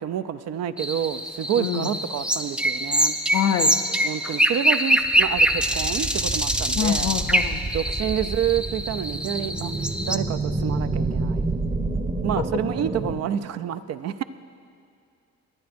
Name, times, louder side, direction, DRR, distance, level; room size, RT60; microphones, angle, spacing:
voice 1, 0.0-3.2 4.0-7.2 7.7-9.7 10.0-11.5 12.2-14.2, right 9 dB, 60° right, 13 dB, 0.5 m, -28 dB
sound 1, 0.8-10.2, equal, 5° right, 0.4 m, -24 dB
voice 2, 1.6-1.9 3.3-3.8 6.8-7.7, left 9 dB, 80° left, 8 dB, 0.6 m, -25 dB
sound 2, 5.0-13.2, right 2 dB, 30° right, 1.0 m, -29 dB
21.5 x 9.2 x 2.6 m, 2.4 s
cardioid pair, 90°, 30 cm